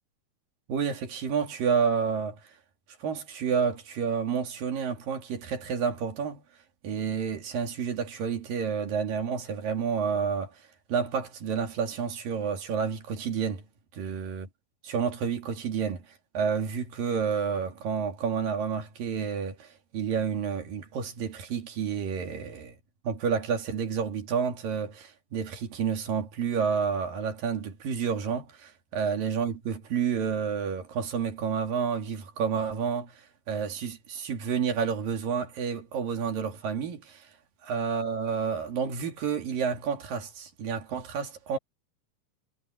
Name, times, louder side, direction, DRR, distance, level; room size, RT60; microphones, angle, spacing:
voice 1, 0.7-2.5 3.0-6.4 6.8-13.7 13.9-14.5 14.8-16.1 16.3-22.8 23.0-37.3 37.6-41.6, right 6 dB, 80° right, 4.2 m, -30 dB
omnidirectional pair, 3.9 m